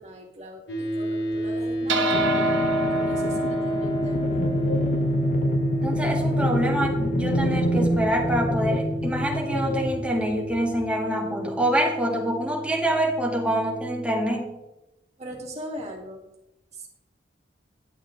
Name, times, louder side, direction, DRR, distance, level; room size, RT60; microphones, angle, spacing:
voice 1, 0.0-2.3 2.9-4.4 15.2-16.2 16.7-16.9, right 1 dB, 35° right, 0 dB, 1.9 m, -40 dB
sound 1, 0.7-14.2, right 1 dB, 65° left, 2.3 m, -31 dB
sound 2, 1.9-6.5, right 1 dB, 90° right, 1.2 m, -28 dB
sound 3, 2.1-10.8, equal, 40° left, 0.7 m, -26 dB
voice 2, 5.8-14.5, right 1 dB, 5° right, -1 dB, 1.5 m, -26 dB
11.0 x 6.9 x 3.9 m, 0.94 s
head